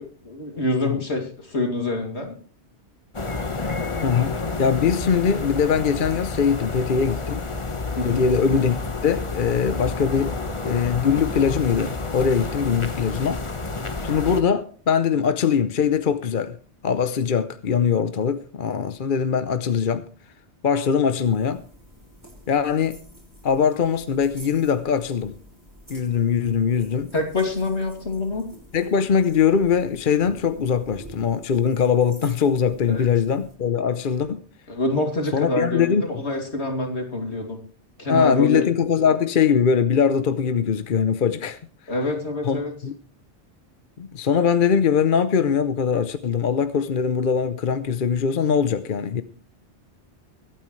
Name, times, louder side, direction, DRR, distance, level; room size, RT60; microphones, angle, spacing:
voice 1, 0.0-2.4 8.0-8.3 27.1-28.5 32.9-33.0 34.7-37.6 38.0-38.6 41.9-42.7, left 2 dB, 75° left, 3.0 m, -26 dB
sound 1, 3.1-14.4, left 3 dB, 30° left, 1.2 m, -30 dB
voice 2, 4.0-7.4 8.0-8.8 9.0-10.4 10.6-13.4 14.0-16.5 16.8-20.0 20.6-21.6 22.5-23.0 23.4-25.3 25.9-27.1 28.7-34.4 35.3-36.2 38.1-41.6 42.4-42.9 44.0-49.2, left 7 dB, 50° left, 0.9 m, -21 dB
sound 2, 21.2-33.5, equal, 15° right, 5.2 m, -48 dB
23.5 x 9.1 x 3.2 m
omnidirectional pair, 1.1 m